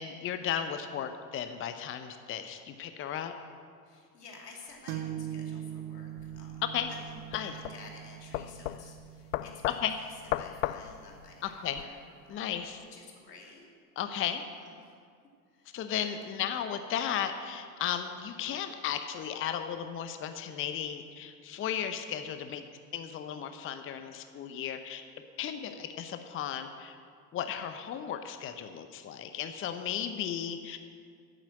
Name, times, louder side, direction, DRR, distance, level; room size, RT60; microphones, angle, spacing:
voice 1, 0.0-3.3 6.7-6.9 7.3-7.5 9.6-9.9 11.6-11.8 12.3-12.8 14.0-14.4 15.7-22.6 22.9-25.0 25.4-27.0 27.3-30.8, left 9 dB, 25° left, 8 dB, 0.7 m, -35 dB
voice 2, 3.8-6.6 6.9-7.2 7.4-12.0 12.3-12.6 12.9-13.7 14.5-15.0 15.5-15.8 16.2-16.3, left 3 dB, 75° left, 0 dB, 2.7 m, -52 dB
sound 1, 4.9-12.4, right 11 dB, 60° right, 1.0 m, -43 dB
sound 2, 6.2-11.8, left 14 dB, 60° left, 0.5 m, -37 dB
11.5 x 9.2 x 7.5 m, 2.2 s
figure-of-eight pair, 75°, 47 cm